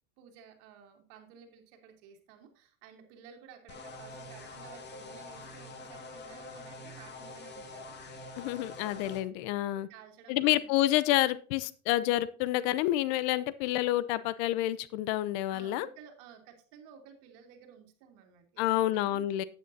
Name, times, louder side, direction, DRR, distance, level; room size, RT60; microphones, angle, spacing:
voice 1, 0.2-8.0 9.9-10.7 15.5-19.2, right 7 dB, 60° right, 4 dB, 2.8 m, -54 dB
sound 1, 3.7-9.2, left 2 dB, 25° left, 1.9 m, -46 dB
voice 2, 8.4-9.9 10.3-15.9 18.6-19.4, left 14 dB, 60° left, 17 dB, 0.8 m, -28 dB
12.0 x 9.1 x 2.7 m, 0.40 s
supercardioid pair, 110°, 38 cm